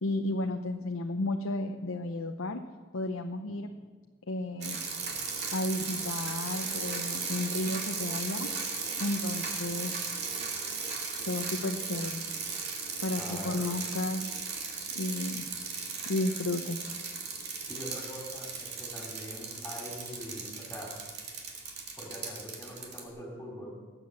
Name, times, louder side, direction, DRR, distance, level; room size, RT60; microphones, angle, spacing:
voice 1, 0.0-2.6 2.9-3.7 4.3-4.8 5.5-8.5 9.0-9.9 11.2-12.2 13.0-14.3 14.9-15.5 16.1-16.9, left 2 dB, 85° left, 5 dB, 0.8 m, -33 dB
sound 1, 4.6-23.0, right 5 dB, 55° right, 2.4 m, -36 dB
voice 2, 13.2-13.6 17.7-20.9 22.0-23.7, equal, 10° left, -2 dB, 4.6 m, -43 dB
19.0 x 7.9 x 7.5 m, 1.4 s
head